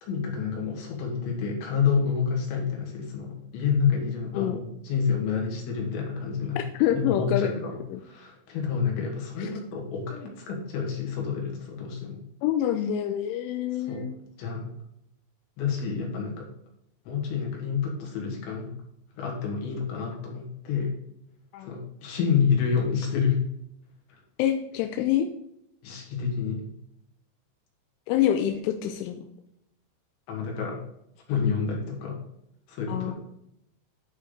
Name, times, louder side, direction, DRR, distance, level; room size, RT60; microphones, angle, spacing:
voice 1, 0.0-6.6 6.9-12.2 13.9-14.1 14.4-14.7 15.6-16.5 17.1-18.7 19.2-20.9 21.6-23.5 24.1-24.2 25.8-26.6 30.3-30.8 31.3-32.2 32.7-33.1, left 6 dB, 75° left, 0 dB, 3.9 m, -28 dB
voice 2, 6.6-7.5 7.9-8.0 9.4-9.5 12.4-14.1 21.5-21.7 24.4-25.3 28.1-29.3 32.9-33.1, left 11 dB, 90° left, 6 dB, 3.1 m, -26 dB
10.5 x 5.2 x 3.8 m, 0.78 s
omnidirectional pair, 5.4 m